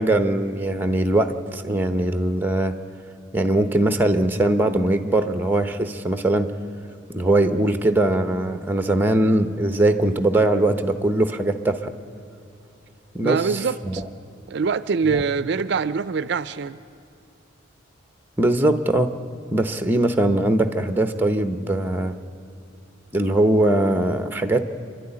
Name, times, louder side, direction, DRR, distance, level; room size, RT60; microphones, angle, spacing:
voice 1, 0.0-2.8 3.3-6.5 7.1-11.9 13.1-14.0 15.1-15.2 18.4-19.1 19.5-22.1 23.1-24.7, right 1 dB, 10° right, 8 dB, 0.8 m, -21 dB
voice 2, 13.2-14.0 14.5-16.8, right 5 dB, 60° right, 15 dB, 0.4 m, -24 dB
27.0 x 12.0 x 9.8 m, 2.7 s
head